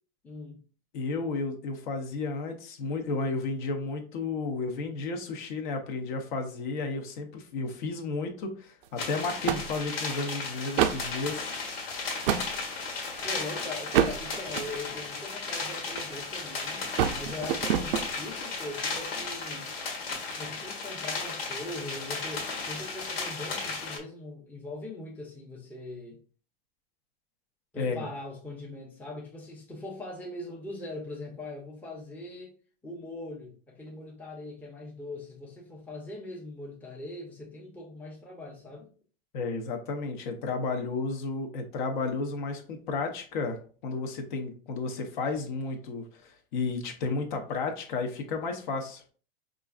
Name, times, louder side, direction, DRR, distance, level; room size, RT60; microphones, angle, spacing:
voice 1, 0.2-0.6 13.2-16.8 17.1-19.7 20.2-26.2 27.7-32.5 32.8-38.9, left 2 dB, 5° left, 0.6 m, -41 dB
voice 2, 0.9-11.5 27.8-28.1 39.3-43.6 43.8-49.0, left 3 dB, 55° left, 0.8 m, -32 dB
sound 1, 8.8-9.0 9.5-10.2 10.7-11.1 11.8-12.5 13.1-13.4 13.9-14.9 15.6-16.3 16.6-18.1, right 9 dB, 65° right, 0.5 m, -28 dB
sound 2, 9.0-24.0, left 4 dB, 80° left, 1.3 m, -35 dB
4.7 x 2.5 x 2.3 m
hypercardioid pair, 130°, 30 cm